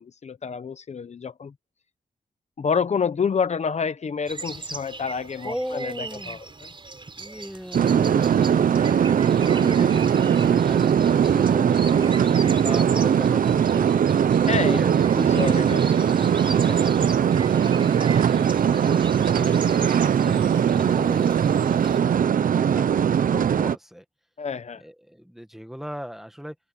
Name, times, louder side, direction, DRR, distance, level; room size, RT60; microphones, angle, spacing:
voice 1, 0.0-1.5 2.6-6.7 9.6-9.9 14.5-14.8 15.2-17.1 24.4-24.8, left 6 dB, 55° left, 0.8 m, -29 dB
sound 1, 4.3-22.0, right 3 dB, 35° right, 4.3 m, -39 dB
voice 2, 5.4-6.4 7.2-12.1 12.6-14.2 14.6-14.9 18.7-24.0 24.8-26.6, equal, 5° right, 1.8 m, -38 dB
sound 2, 7.7-23.8, right 8 dB, 85° right, 0.7 m, -20 dB
wide cardioid pair, 110°, 14 cm